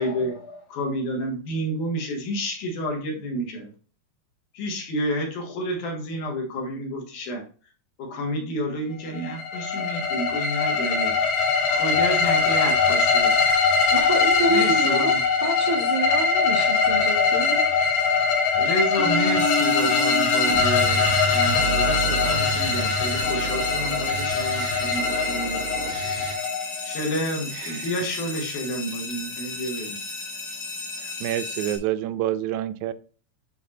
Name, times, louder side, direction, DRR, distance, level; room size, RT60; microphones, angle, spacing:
voice 1, 0.0-3.7 4.5-7.4 8.0-11.2 11.7-13.4 14.5-15.2 18.5-25.6 26.8-30.0, equal, 75° left, 1 dB, 3.0 m, -30 dB
sound 1, 9.1-27.0, left 5 dB, 90° left, 2.9 m, -22 dB
voice 2, 13.9-15.1 15.4-17.6, right 2 dB, 15° right, -1 dB, 1.1 m, -27 dB
sound 2, 19.0-26.3, right 2 dB, 55° right, 0.6 m, -29 dB
sound 3, 19.4-31.8, left 3 dB, 45° left, 1.3 m, -35 dB
voice 3, 31.2-32.9, right 12 dB, 80° right, 12 dB, 1.9 m, -27 dB
10.0 x 4.6 x 2.8 m, 0.39 s
omnidirectional pair, 3.6 m